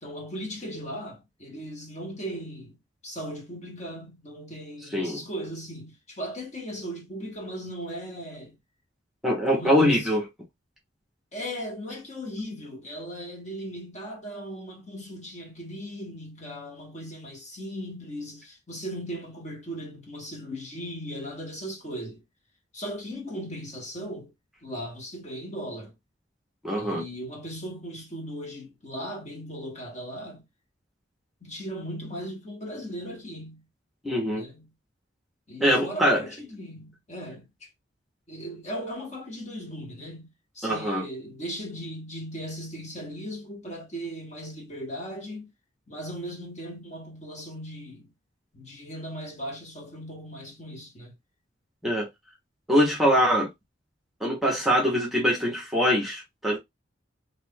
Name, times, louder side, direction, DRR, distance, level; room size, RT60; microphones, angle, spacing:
voice 1, 0.0-2.8 3.0-8.6 9.5-10.1 11.3-22.2 22.7-24.3 24.6-25.9 26.8-30.4 31.4-33.6 34.3-34.7 35.5-37.7 38.3-40.3 40.5-45.5 45.9-48.1 48.5-51.1, equal, 35° left, 1.3 m, -38 dB
voice 2, 4.9-5.2 9.2-10.2 26.6-27.0 34.0-34.4 35.6-36.2 40.6-41.1 51.8-52.1 52.7-53.5 54.2-56.6, equal, ahead, 0.9 m, -23 dB
2.7 x 2.5 x 3.6 m
head